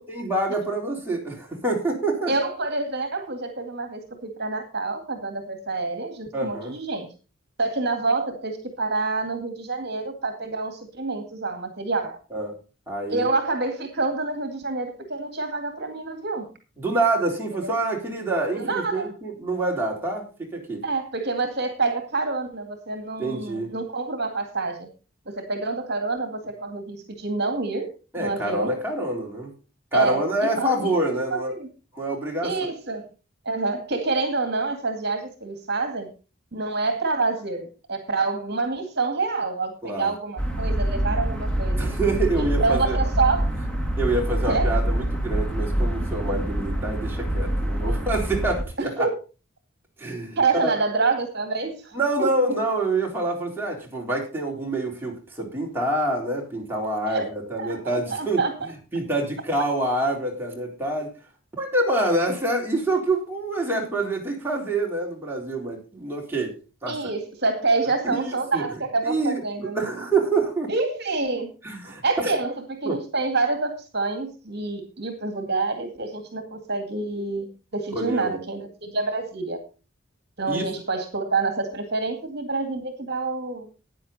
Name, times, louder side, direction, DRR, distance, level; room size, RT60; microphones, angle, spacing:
voice 1, 0.1-2.3 6.3-6.7 12.3-12.5 12.9-13.3 16.8-20.8 23.2-23.7 28.1-29.5 29.9-31.5 31.9-32.7 39.8-40.1 41.8-43.0 44.0-49.1 50.0-50.8 51.9-58.4 58.9-61.1 61.6-66.5 66.8-67.0 68.0-68.6 69.1-70.7 71.6-72.3 72.9-73.0 77.9-78.4 80.5-80.6, right 2 dB, 10° right, -2 dB, 3.9 m, -26 dB
voice 2, 2.3-7.1 7.6-12.2 13.1-16.5 17.6-17.7 18.5-19.1 20.8-24.9 25.3-27.9 28.2-28.7 29.9-30.9 31.3-31.7 32.4-33.1 33.5-36.1 36.5-41.9 42.4-43.6 44.5-44.8 48.8-49.1 50.4-52.6 57.1-57.3 57.6-57.8 58.1-58.7 66.9-69.9 70.7-71.5 72.0-77.5 77.7-79.6 80.4-83.7, right 3 dB, 55° right, 6 dB, 2.1 m, -27 dB
sound 1, 40.4-48.6, right 1 dB, 5° left, 2.1 m, -25 dB
13.5 x 9.7 x 4.1 m, 0.33 s
head